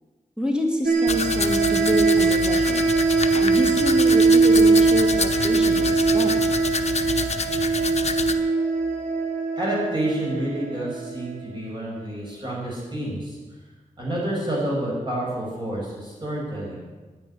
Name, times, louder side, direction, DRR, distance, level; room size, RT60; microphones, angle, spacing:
voice 1, 0.4-2.8 3.4-6.4, equal, 5° right, 0 dB, 2.3 m, -28 dB
sound 1, 0.8-11.3, right 4 dB, 80° right, 2.6 m, -21 dB
Domestic sounds home sounds, 1.1-8.3, left 4 dB, 50° left, 0.9 m, -28 dB
voice 2, 9.6-13.4 14.0-16.8, right 1 dB, 35° right, -5 dB, 5.9 m, -29 dB
9.8 x 9.8 x 9.9 m, 1.3 s
wide cardioid pair, 120°, 14 cm